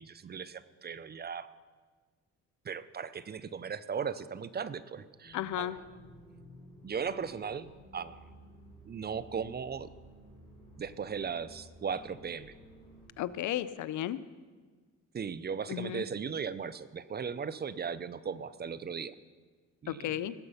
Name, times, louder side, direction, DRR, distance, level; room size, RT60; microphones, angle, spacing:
voice 1, 0.0-1.5 2.6-5.7 6.8-8.2 8.9-9.9 10.8-12.5 15.1-19.1 19.8-20.1, right 6 dB, 35° right, 15 dB, 0.6 m, -37 dB
sound 1, 5.2-13.1, equal, 20° left, 4.7 m, -54 dB
voice 2, 5.3-5.8 13.2-14.2 15.7-16.0 19.9-20.3, left 12 dB, 75° left, 16 dB, 0.6 m, -34 dB
19.0 x 7.9 x 5.6 m, 1.4 s
cardioid pair, 90°, 30 cm